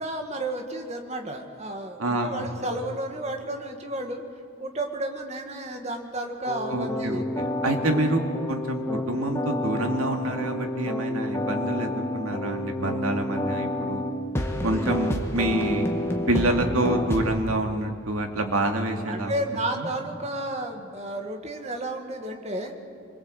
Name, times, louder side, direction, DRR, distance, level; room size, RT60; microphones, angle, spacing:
voice 1, 0.0-4.2 4.6-7.2 7.8-8.0 14.7-14.8 19.1-22.7, right 1 dB, 30° right, 4 dB, 2.1 m, -32 dB
voice 2, 2.0-2.6 6.7-8.2 8.5-14.0 14.6-15.9 16.3-19.3 19.8-19.9, right 1 dB, 90° right, 4 dB, 2.6 m, -27 dB
sound 1, 6.5-17.4, left 1 dB, 10° left, 2.0 m, -29 dB
25.5 x 22.0 x 8.2 m, 2.3 s
head